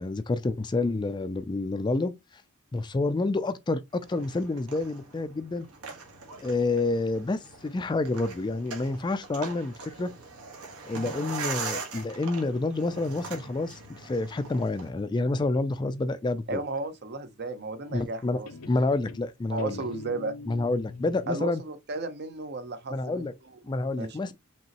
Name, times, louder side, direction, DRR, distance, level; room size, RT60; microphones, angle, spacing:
voice 1, 0.0-2.4 2.7-5.7 6.4-10.1 10.9-16.6 17.9-18.4 18.7-19.8 20.5-21.6 22.9-23.3 23.6-24.3, left 2 dB, 20° left, 0.3 m, -28 dB
sound 1, 4.0-14.9, right 4 dB, 80° right, 1.4 m, -41 dB
Guitar, 12.8-16.3 17.8-18.2 18.5-21.4, left 3 dB, 90° left, 0.6 m, -46 dB
voice 2, 16.5-18.5 19.5-20.4 21.3-23.3 24.0-24.3, right 3 dB, 50° right, 0.7 m, -34 dB
5.3 x 2.9 x 2.9 m
head